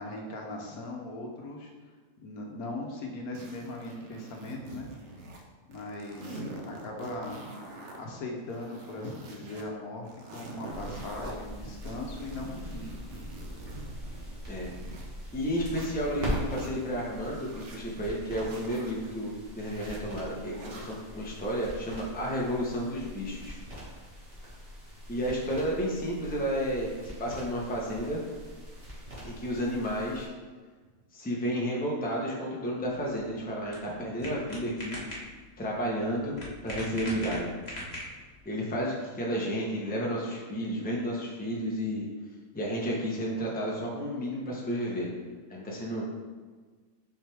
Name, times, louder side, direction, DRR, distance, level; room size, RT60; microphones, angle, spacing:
voice 1, 0.0-1.7 2.2-4.9 5.7-7.4 8.0-12.9, left 2 dB, 70° left, 0 dB, 1.3 m, -39 dB
sound 1, 3.4-5.4 5.7-8.0 8.4-9.6 10.0-11.3 11.8-15.1 15.5-16.7 17.2-17.8 18.4-18.9 19.5-20.0 20.5-21.0, right 2 dB, 55° right, 1.0 m, -45 dB
sound 2, 10.7-30.3, equal, 40° right, 1.8 m, -42 dB
voice 2, 15.3-23.6 25.1-26.9 27.2-28.2 29.2-30.3 31.1-35.0 35.6-36.3 36.6-37.5 38.4-42.0 42.5-45.1 45.5-46.0, equal, 5° left, -3 dB, 0.8 m, -32 dB
sound 3, 32.8-38.4, left 1 dB, 25° left, 1.4 m, -42 dB
6.2 x 5.0 x 3.5 m, 1.4 s
omnidirectional pair, 1.7 m